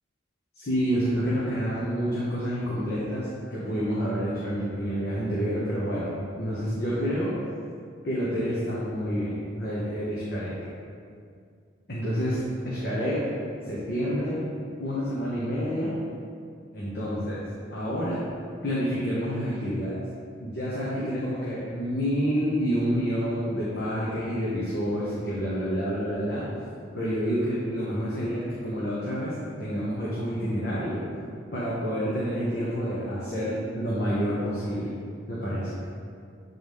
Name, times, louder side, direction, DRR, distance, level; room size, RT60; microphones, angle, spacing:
voice 1, 0.5-7.3 8.0-10.5 11.9-13.2 13.7-14.4 14.8-15.9 16.7-17.4 17.7-18.2 18.6-20.0 20.4-26.4 26.9-29.3 29.6-31.0 31.5-34.9 35.3-35.7, equal, 55° left, -8 dB, 1.0 m, -28 dB
7.8 x 4.0 x 3.5 m, 2.3 s
head